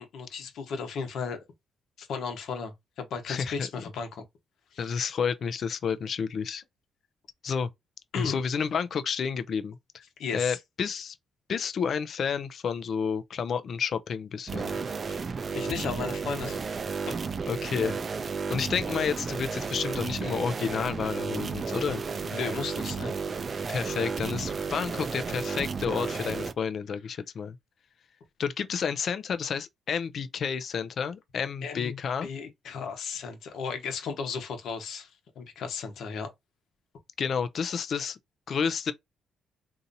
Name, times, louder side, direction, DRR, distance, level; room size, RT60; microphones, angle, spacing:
voice 1, 0.0-1.4 2.0-2.7 3.0-4.2 4.7-4.9 8.1-8.4 10.2-10.6 15.1-15.2 15.5-16.6 17.1-17.2 22.3-23.1 31.6-35.1 35.4-36.3, left 5 dB, 75° left, 1.0 m, -35 dB
voice 2, 3.3-3.7 4.8-6.6 7.4-7.7 8.2-10.0 10.3-11.1 11.5-14.8 17.5-18.0 18.5-22.0 23.7-27.6 28.4-32.3 37.2-38.2 38.5-38.9, left 6 dB, 55° left, 0.5 m, -30 dB
sound 1, 14.5-26.5, right 5 dB, 40° right, 0.4 m, -33 dB
3.9 x 2.8 x 2.7 m
cardioid pair, 90°, 0 cm